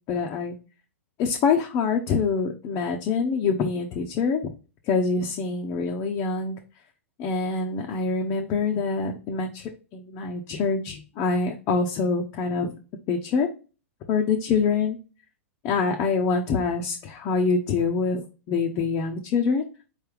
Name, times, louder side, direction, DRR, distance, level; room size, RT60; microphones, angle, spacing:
voice 1, 0.1-0.6 1.2-4.5 4.9-6.6 7.2-12.7 13.1-13.5 14.1-15.0 15.6-19.6, left 5 dB, 35° left, 1 dB, 0.6 m, -25 dB
4.4 x 3.3 x 3.2 m, 0.33 s
hypercardioid pair, 105°, 8 cm